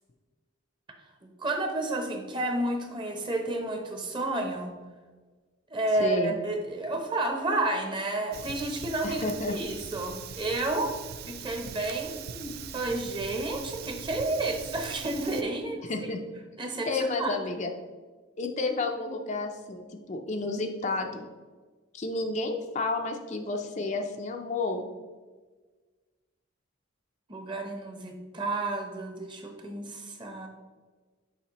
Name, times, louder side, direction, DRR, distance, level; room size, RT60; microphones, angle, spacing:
voice 1, 1.2-4.7 5.7-10.9 11.3-16.1 16.6-17.3 27.3-30.5, right 2 dB, 25° right, 3 dB, 0.8 m, -31 dB
voice 2, 6.0-6.4 9.0-9.6 15.8-16.2 16.9-17.7 18.4-21.3 21.9-24.8, left 3 dB, 35° left, 4 dB, 0.5 m, -31 dB
Fire, 8.3-15.4, right 7 dB, 50° right, 0.3 m, -41 dB
7.0 x 5.0 x 3.0 m, 1.4 s
head